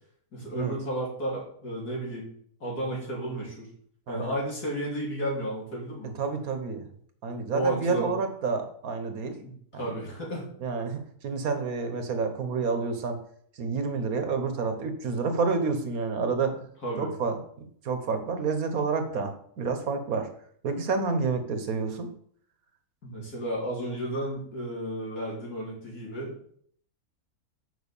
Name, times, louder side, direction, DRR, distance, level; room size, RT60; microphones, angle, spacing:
voice 1, 0.3-2.3 2.6-3.7 4.1-6.1 7.5-8.1 9.4-10.5 16.8-17.1 23.0-26.3, right 1 dB, 85° left, -4 dB, 3.7 m, -33 dB
voice 2, 4.1-4.4 6.2-6.9 7.2-9.9 10.6-13.2 13.6-16.5 17.0-20.3 20.6-22.1, right 4 dB, 70° right, 7 dB, 1.5 m, -29 dB
6.5 x 5.7 x 7.0 m, 0.62 s
omnidirectional pair, 1.6 m